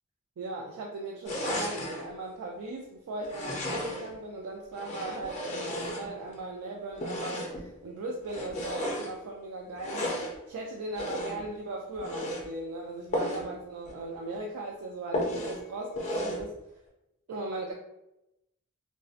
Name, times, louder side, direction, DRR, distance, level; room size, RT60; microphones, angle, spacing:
voice 1, 0.4-16.5 17.3-17.7, right 2 dB, 85° right, 0 dB, 0.3 m, -38 dB
sound 1, 1.2-2.1 3.2-4.2 4.7-6.4 7.0-7.7 8.2-9.1 9.8-10.4 10.9-11.5 12.0-12.5 13.1-13.5 13.9-14.0 14.3-14.4 15.1-15.6 16.0-16.5, left 1 dB, 30° left, 0.4 m, -34 dB
2.5 x 2.1 x 2.4 m, 0.88 s
head